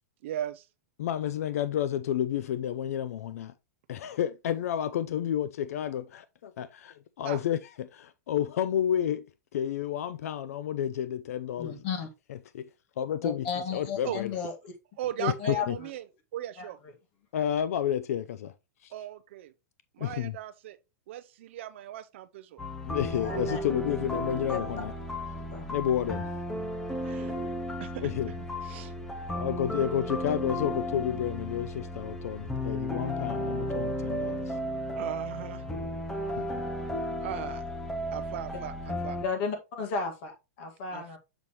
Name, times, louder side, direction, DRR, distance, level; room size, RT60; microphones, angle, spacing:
voice 1, 0.2-0.7 7.2-7.4 14.0-14.2 15.0-16.1 16.3-16.8 18.9-19.5 20.0-20.8 21.1-22.6 27.0-27.3 27.8-28.1 28.6-28.9 34.9-35.6 37.2-37.6 38.1-39.2 40.9-41.2, right 12 dB, 45° right, 0.5 m, -38 dB
voice 2, 1.0-3.5 3.9-9.3 9.5-11.8 12.3-12.7 13.0-13.5 13.7-14.3 15.5-15.8 17.3-18.5 18.8-18.9 20.0-20.4 22.8-24.9 25.7-26.3 28.0-28.3 29.3-34.6 36.4-36.5, left 10 dB, 60° left, 0.5 m, -30 dB
voice 3, 11.6-12.1 13.2-14.5 15.2-15.6 16.6-16.7 23.2-23.6 24.5-24.6 25.5-25.8 26.9-27.3 39.2-41.2, left 5 dB, 35° left, 1.8 m, -34 dB
sound 1, 22.6-39.2, equal, 5° left, 0.6 m, -34 dB
7.0 x 5.5 x 3.0 m
supercardioid pair, 175°, 9 cm